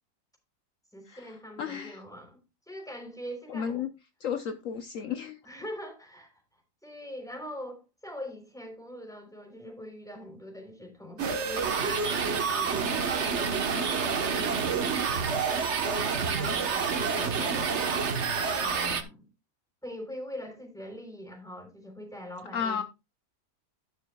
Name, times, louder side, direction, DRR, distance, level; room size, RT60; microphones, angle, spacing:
voice 1, 0.9-2.4 2.7-3.9 5.4-6.4 6.8-12.9 13.6-15.3 16.1-18.1 18.6-19.3 19.8-22.8, equal, ahead, 3.6 m, -43 dB
voice 2, 1.6-2.0 3.5-3.9 4.2-5.4 22.5-22.8, left 7 dB, 65° left, 1.1 m, -32 dB
sound 1, 11.2-19.0, right 5 dB, 50° right, 1.4 m, -28 dB
12.0 x 11.0 x 2.3 m
omnidirectional pair, 1.6 m